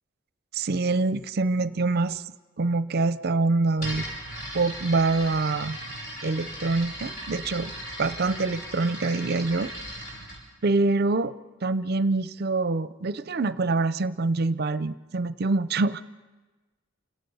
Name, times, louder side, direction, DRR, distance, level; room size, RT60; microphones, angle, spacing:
voice 1, 0.5-2.2 2.6-4.1 4.5-5.8 6.2-7.7 8.0-9.7 10.6-11.4 11.6-16.0, right 3 dB, 50° right, 15 dB, 0.6 m, -25 dB
sound 1, 3.8-10.4, equal, 45° left, 7.2 m, -37 dB
28.5 x 17.5 x 5.5 m, 1.2 s
head